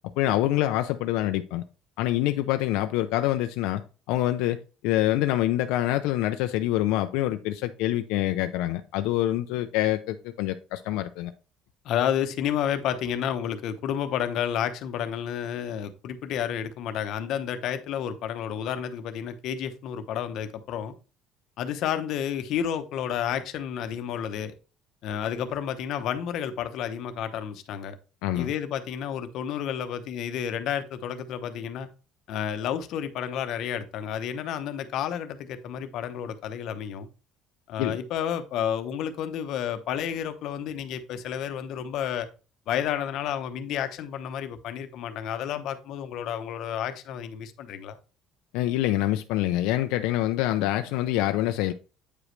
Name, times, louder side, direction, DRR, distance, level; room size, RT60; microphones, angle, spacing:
voice 1, 0.2-1.6 2.0-3.8 4.1-11.3 28.2-28.5 37.8-38.0 48.5-51.7, left 14 dB, 90° left, 0.4 m, -26 dB
voice 2, 11.8-20.9 21.6-24.5 25.0-28.0 28.3-31.9 32.3-37.1 37.7-42.3 42.7-48.0, left 9 dB, 55° left, 0.8 m, -31 dB
8.5 x 5.0 x 3.2 m
cardioid pair, 165°, 0 cm